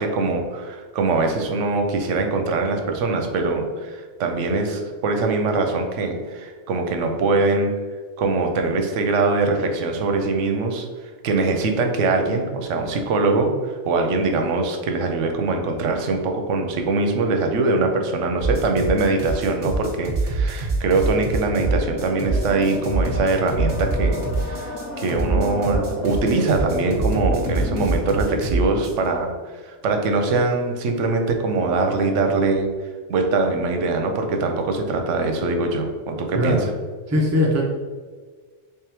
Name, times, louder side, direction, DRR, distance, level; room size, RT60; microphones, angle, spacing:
voice 1, 0.0-7.7 8.2-10.9 11.2-32.7 33.1-36.7, right 3 dB, 85° right, 4 dB, 0.9 m, -22 dB
sound 1, 18.4-29.1, right 3 dB, 55° right, 1.2 m, -25 dB
sound 2, 21.5-27.9, left 2 dB, 45° left, 0.7 m, -32 dB
voice 2, 36.3-36.6 37.1-37.6, left 1 dB, 20° right, -2 dB, 0.4 m, -20 dB
3.5 x 3.5 x 3.0 m, 1.5 s
omnidirectional pair, 1.2 m